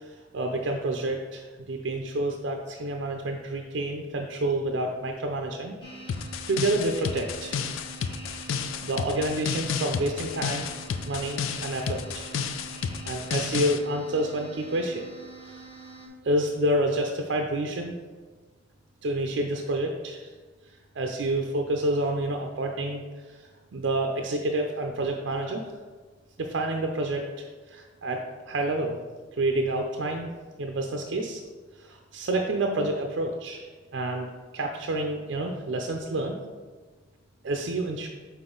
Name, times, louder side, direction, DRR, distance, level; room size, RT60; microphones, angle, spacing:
voice 1, 0.0-5.8 6.5-7.6 8.8-10.7 11.0-12.3 13.0-15.1 15.5-15.6 16.2-17.9 19.0-20.3 21.0-23.0 23.7-25.6 26.4-28.2 28.5-29.0 29.4-30.3 30.6-31.4 31.8-34.3 34.5-36.4 37.4-38.1, right 1 dB, 65° right, 2 dB, 0.5 m, -28 dB
sound 1, 5.8-16.1, right 3 dB, 20° left, 1.1 m, -45 dB
sound 2, 6.1-13.8, left 6 dB, 85° left, 0.4 m, -31 dB
6.0 x 4.2 x 3.8 m, 1.4 s
head